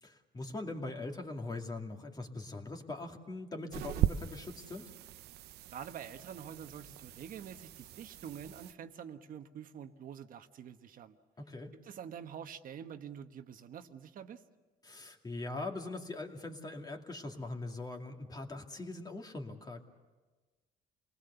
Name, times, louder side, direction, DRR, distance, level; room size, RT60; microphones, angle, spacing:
voice 1, 0.0-4.9 11.4-11.7 14.8-19.8, left 2 dB, 25° left, 3 dB, 2.5 m, -42 dB
sound 1, 3.7-8.7, right 13 dB, 75° right, 0.7 m, -38 dB
voice 2, 5.7-11.2 11.7-14.4, right 8 dB, 55° right, 8 dB, 1.3 m, -46 dB
29.0 x 20.0 x 7.0 m, 1.3 s
cardioid pair, 110°, 17 cm